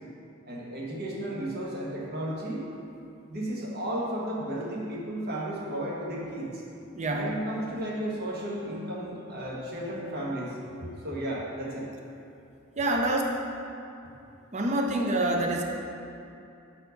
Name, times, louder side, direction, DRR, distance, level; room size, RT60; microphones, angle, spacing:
voice 1, 0.4-2.6 3.3-6.6 7.1-11.9, right 1 dB, 50° right, -4 dB, 1.2 m, -34 dB
voice 2, 6.9-7.4 12.8-13.2 14.5-15.6, right 1 dB, 35° right, 1 dB, 0.6 m, -26 dB
5.7 x 4.7 x 5.2 m, 2.7 s
head